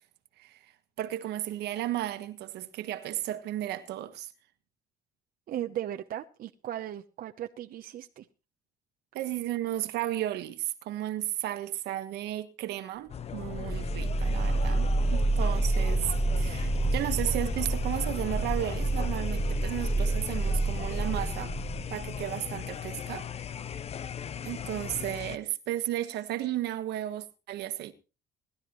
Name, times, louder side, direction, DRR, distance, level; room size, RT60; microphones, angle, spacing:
voice 1, 1.0-4.3 9.1-21.5 21.9-23.3 24.4-27.9, right 13 dB, 80° right, 1.4 m, -34 dB
voice 2, 5.5-8.3, right 12 dB, 60° right, 0.9 m, -37 dB
sound 1, 13.1-25.4, left 9 dB, 40° left, 0.7 m, -38 dB
sound 2, 13.2-22.6, right 2 dB, 15° left, 7.3 m, -29 dB
21.5 x 12.0 x 3.1 m
cardioid pair, 110°, 17 cm